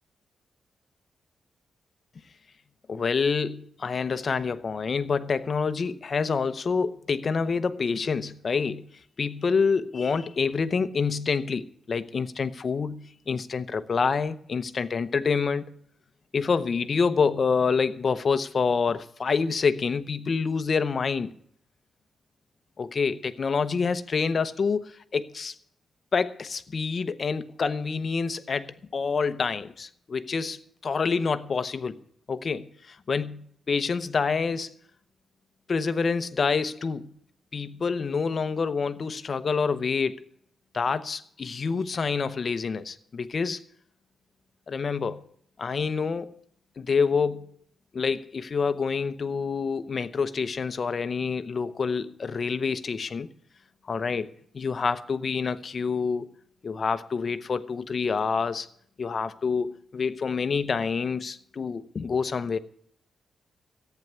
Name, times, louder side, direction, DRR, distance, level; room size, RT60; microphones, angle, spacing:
voice 1, 2.9-8.9 9.2-15.7 16.3-21.3 22.8-25.6 26.1-32.0 32.3-34.7 35.7-37.1 37.5-40.2 40.7-43.6 44.7-45.2 45.6-46.4 46.8-47.5 47.9-53.3 53.9-56.3 56.6-58.7 59.0-62.6, left 5 dB, 45° left, 0.8 m, -27 dB
14.5 x 9.3 x 6.8 m
wide cardioid pair, 130°, 0 cm